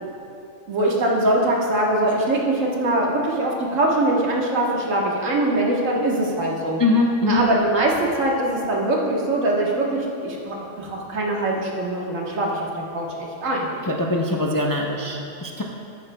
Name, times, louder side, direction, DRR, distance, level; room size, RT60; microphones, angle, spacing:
voice 1, 0.7-6.8 7.2-12.7 12.9-13.7, right 1 dB, 85° right, -2 dB, 1.6 m, -22 dB
voice 2, 6.8-7.4 13.9-15.6, left 2 dB, 35° left, -1 dB, 0.3 m, -22 dB
13.5 x 9.4 x 2.2 m, 2.5 s
omnidirectional pair, 1.3 m